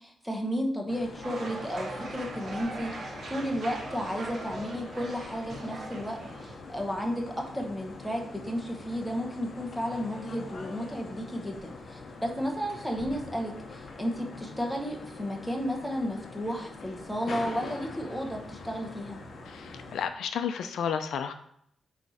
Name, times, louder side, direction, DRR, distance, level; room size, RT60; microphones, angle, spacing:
voice 1, 0.0-19.2, equal, ahead, 1 dB, 0.9 m, -33 dB
sound 1, 0.9-20.0, left 3 dB, 40° left, 0.9 m, -44 dB
sound 2, 1.2-6.6, right 2 dB, 40° right, 1.0 m, -40 dB
voice 2, 19.5-21.3, left 7 dB, 70° left, 8 dB, 0.4 m, -32 dB
8.3 x 3.2 x 4.1 m, 0.70 s
wide cardioid pair, 180°, 0 cm